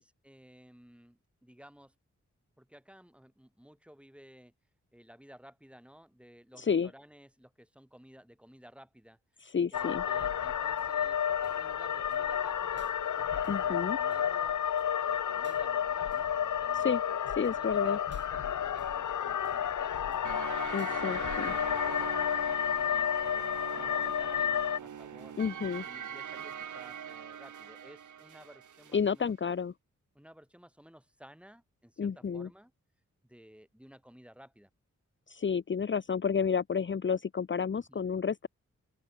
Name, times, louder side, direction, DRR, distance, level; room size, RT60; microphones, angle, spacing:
voice 1, 0.0-1.9 2.6-4.5 4.9-14.7 15.1-20.3 20.9-25.4 25.8-29.3 30.2-32.7 33.2-34.7 37.7-38.1, equal, 5° right, 5.2 m, -56 dB
voice 2, 6.6-6.9 9.5-10.0 13.5-14.0 16.8-17.0 17.3-18.0 20.7-21.5 25.4-25.8 28.9-29.7 32.0-32.5 35.3-38.5, left 6 dB, 40° left, 0.7 m, -30 dB
sound 1, 9.7-24.8, left 9 dB, 85° left, 0.9 m, -31 dB
sound 2, 10.8-11.1 11.4-11.8 12.1-12.2 12.8-12.9 13.4-13.8 14.1-14.4 14.8-14.9 15.4-15.6 16.1-16.4 16.8-17.1 17.4-17.5 18.1-18.3 18.8-19.1 19.4-19.8 20.1-20.2 20.8-21.0, right 3 dB, 40° right, 6.7 m, -60 dB
sound 3, 20.2-29.0, right 8 dB, 85° right, 1.2 m, -42 dB
open air
wide cardioid pair, 70°, 30 cm